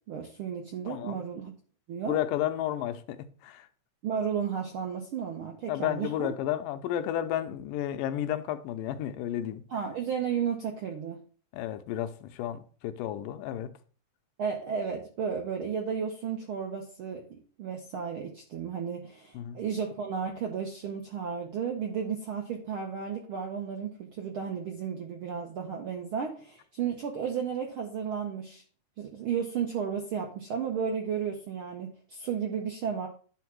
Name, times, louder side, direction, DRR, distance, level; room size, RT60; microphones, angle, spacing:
voice 1, 0.1-1.5 1.9-2.2 4.0-6.3 9.7-11.2 14.4-28.6 29.0-33.1, right 7 dB, 75° right, 1.2 m, -33 dB
voice 2, 0.9-1.2 2.1-3.2 3.4-3.7 5.7-9.6 11.5-13.7 19.3-19.6, left 11 dB, 85° left, 2.4 m, -32 dB
10.5 x 3.6 x 6.1 m
omnidirectional pair, 3.8 m